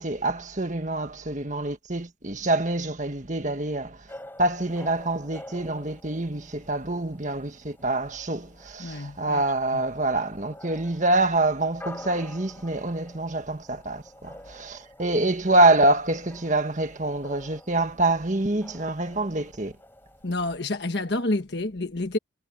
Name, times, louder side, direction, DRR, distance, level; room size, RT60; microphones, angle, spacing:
voice 1, 0.0-4.1 4.4-19.7, right 2 dB, 40° right, 1.6 m, -26 dB
sound 1, 4.1-20.4, left 1 dB, 10° left, 7.4 m, -48 dB
voice 2, 8.8-9.4 9.7-9.8 20.2-22.2, left 2 dB, 60° left, 1.4 m, -29 dB
head